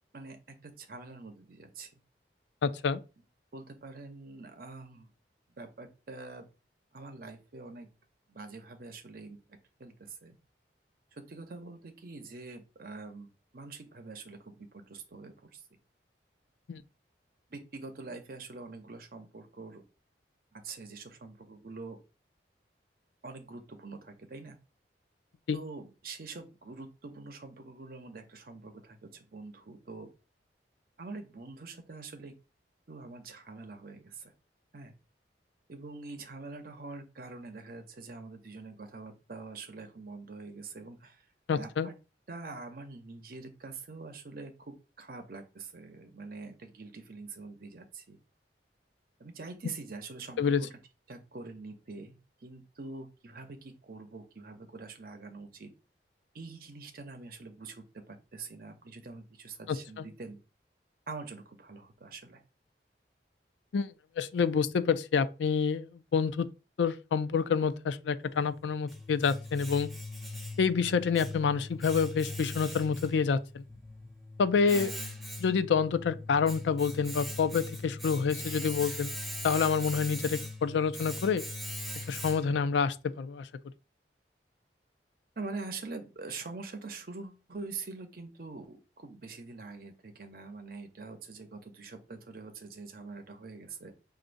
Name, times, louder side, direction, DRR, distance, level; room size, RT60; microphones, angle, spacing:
voice 1, 0.6-1.9 3.5-5.1 5.6-6.5 6.9-7.9 8.3-10.4 11.3-15.6 17.5-19.8 20.5-22.0 23.2-24.6 25.5-30.1 31.0-32.3 32.9-34.3 34.7-34.9 35.7-41.2 41.5-41.9 42.3-48.2 49.2-50.7 51.1-55.7 56.3-60.4 61.1-62.4 74.5-75.2 85.4-93.9, right 3 dB, 55° right, 0.7 m, -45 dB
voice 2, 2.6-3.0 16.7-16.8 25.5-25.6 41.5-41.9 49.6-49.7 50.4-50.6 59.7-60.1 63.7-63.9 64.2-66.5 66.8-69.9 70.6-73.6 74.4-74.9 75.4-79.1 79.4-81.4 82.1-83.5, left 6 dB, 90° left, 0.4 m, -28 dB
Domestic sounds home sounds, 68.4-82.7, left 1 dB, ahead, 0.5 m, -41 dB
6.2 x 2.5 x 2.6 m
head